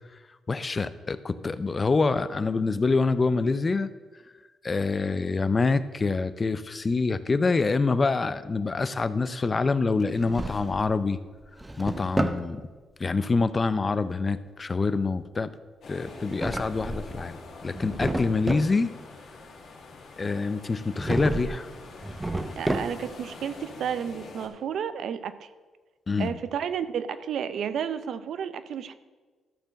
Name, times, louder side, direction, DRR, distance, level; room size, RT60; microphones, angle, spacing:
voice 1, 0.5-3.9 4.6-11.2 11.8-12.6 13.0-15.5 15.9-18.9 20.2-21.7 26.1-26.4, left 4 dB, 30° left, 14 dB, 0.5 m, -26 dB
Drawer open or close, 10.0-11.0 11.4-12.5 16.1-17.2 17.6-18.7 20.9-21.6 22.0-23.2, right 2 dB, 15° right, 0.7 m, -31 dB
sound 1, 15.8-24.5, left 3 dB, 75° left, 2.0 m, -45 dB
voice 2, 22.6-25.5 26.2-28.9, right 8 dB, 75° right, 13 dB, 0.5 m, -32 dB
13.5 x 4.4 x 6.3 m, 1.4 s
cardioid pair, 90°, 0 cm